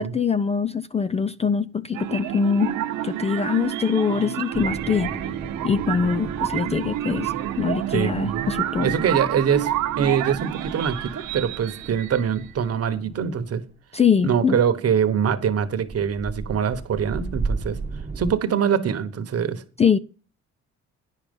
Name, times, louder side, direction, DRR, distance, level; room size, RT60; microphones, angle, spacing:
voice 1, 0.0-2.8 3.0-5.2 5.6-8.9 13.9-14.6 19.8-20.0, left 6 dB, 20° left, 0.3 m, -23 dB
sound 1, 1.9-12.5, right 13 dB, 85° right, 0.8 m, -29 dB
sound 2, 4.5-13.3 15.6-18.3, right 4 dB, 20° right, 1.0 m, -35 dB
voice 2, 7.9-8.5 8.8-9.7 10.0-13.6 14.2-17.8 18.2-19.6, right 7 dB, 55° right, 1.1 m, -23 dB
9.9 x 6.5 x 5.3 m
cardioid pair, 90°, 30 cm